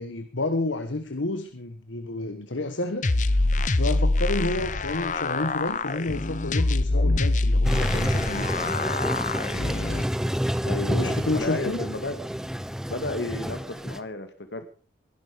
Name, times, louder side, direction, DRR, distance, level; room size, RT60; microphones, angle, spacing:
voice 1, 0.0-8.7 10.9-11.8, left 2 dB, 90° left, 9 dB, 1.3 m, -30 dB
sound 1, 3.0-10.0, left 2 dB, 40° left, 0.8 m, -25 dB
Toilet flush, 7.6-14.0, equal, 5° right, 0.8 m, -29 dB
voice 2, 10.6-12.2 12.9-14.7, left 2 dB, 70° left, 9 dB, 2.0 m, -32 dB
21.0 x 11.0 x 5.2 m, 0.39 s
head